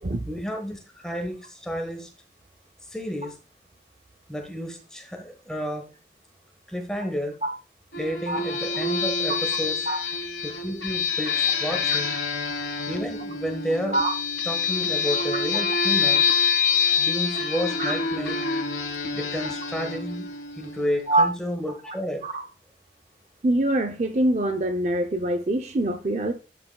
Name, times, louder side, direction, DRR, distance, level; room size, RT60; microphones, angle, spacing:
voice 1, 0.3-2.1 2.9-3.3 4.3-5.9 6.7-7.4 8.0-9.8 10.4-12.2 12.9-14.0 14.5-16.2 17.0-18.4 19.1-20.3 20.6-22.2, equal, 5° left, 3 dB, 1.3 m, -31 dB
sound 1, 7.9-21.1, left 6 dB, 90° left, 1.3 m, -26 dB
voice 2, 23.4-26.3, right 1 dB, 40° right, 6 dB, 0.5 m, -24 dB
11.5 x 6.0 x 2.3 m, 0.33 s
head